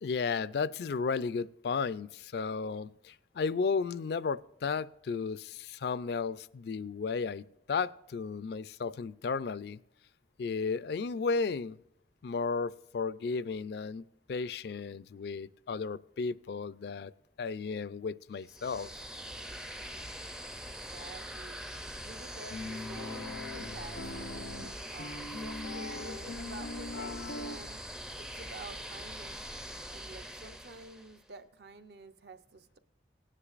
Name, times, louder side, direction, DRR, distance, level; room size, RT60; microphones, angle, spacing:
voice 1, 0.0-9.8 10.4-11.8 12.2-17.1 17.4-18.9, left 5 dB, 60° left, 18 dB, 0.4 m, -34 dB
sound 1, 18.4-31.2, equal, 5° right, 0.4 m, -43 dB
voice 2, 20.6-21.6 22.0-24.4 24.9-27.8 28.2-29.5 29.9-32.8, right 2 dB, 60° right, 9 dB, 0.7 m, -49 dB
sound 2, 22.5-27.6, left 2 dB, 90° left, 0.8 m, -41 dB
17.5 x 9.9 x 2.5 m, 0.83 s
head